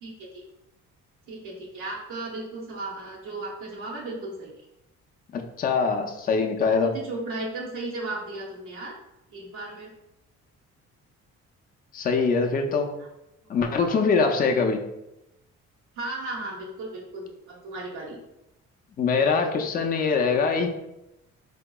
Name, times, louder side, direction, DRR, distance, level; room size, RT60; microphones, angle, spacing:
voice 1, 0.0-0.4 1.3-4.5 6.6-9.0 9.3-9.9 13.0-13.1 13.7-13.9 14.5-14.6 16.0-18.2, right 2 dB, 90° right, -4 dB, 0.8 m, -35 dB
voice 2, 5.3-6.9 11.9-12.9 13.5-14.8 19.0-20.7, left 4 dB, 30° left, 3 dB, 0.4 m, -23 dB
3.8 x 2.8 x 2.2 m, 0.89 s
cardioid pair, 90°, 30 cm